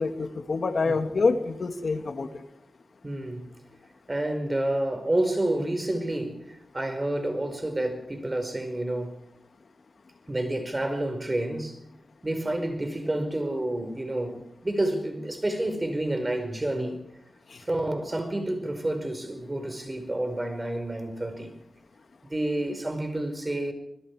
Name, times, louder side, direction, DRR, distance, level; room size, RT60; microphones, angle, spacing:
voice 1, 0.0-2.3, left 4 dB, 65° left, 1.9 m, -26 dB
voice 2, 3.0-3.5 4.1-9.2 10.3-11.8 12.2-17.0 17.6-21.5 22.3-23.7, right 1 dB, 25° right, 5.1 m, -29 dB
25.5 x 21.0 x 4.9 m
cardioid pair, 65°, 0 cm